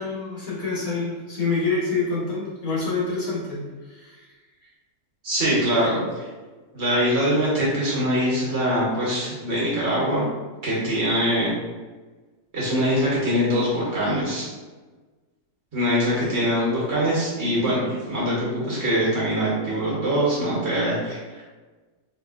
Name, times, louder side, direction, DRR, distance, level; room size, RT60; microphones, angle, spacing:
voice 1, 0.0-4.3 4.6-4.7, left 4 dB, 70° left, -6 dB, 1.4 m, -27 dB
voice 2, 5.2-6.3 6.7-10.2 10.6-11.5 12.5-14.5 15.7-21.4, equal, 50° right, -6 dB, 1.2 m, -23 dB
4.1 x 2.8 x 2.4 m, 1.3 s
omnidirectional pair, 1.6 m